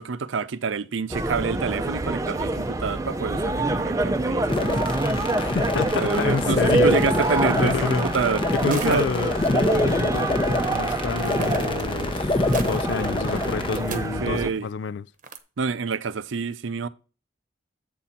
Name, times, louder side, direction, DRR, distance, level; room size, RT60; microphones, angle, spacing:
voice 1, 0.0-4.8 6.0-9.0 13.9-14.7 15.6-16.9, right 5 dB, 85° right, 0.6 m, -27 dB
sound 1, 1.1-14.5, right 2 dB, 15° right, 0.5 m, -26 dB
sound 2, 4.5-13.8, left 2 dB, 25° left, 0.7 m, -26 dB
voice 2, 5.4-7.0 7.3-8.1 8.5-15.1, left 5 dB, 70° left, 0.4 m, -29 dB
sound 3, 8.5-9.3 9.5-9.6 10.8-14.6 15.2-15.4, right 5 dB, 40° right, 0.9 m, -39 dB
8.4 x 4.1 x 5.8 m
head